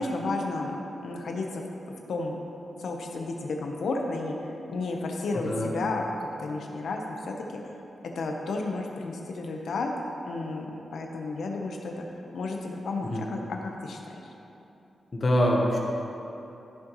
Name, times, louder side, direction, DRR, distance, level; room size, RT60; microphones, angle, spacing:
voice 1, 0.0-2.4 2.8-7.3 8.1-9.9 10.2-12.0 12.3-14.2, left 3 dB, 75° left, 1 dB, 0.9 m, -32 dB
voice 2, 5.3-5.7 13.0-13.2 15.1-15.8, equal, 35° left, -1 dB, 1.0 m, -24 dB
14.0 x 6.6 x 3.1 m, 2.9 s
wide cardioid pair, 155°, 0 cm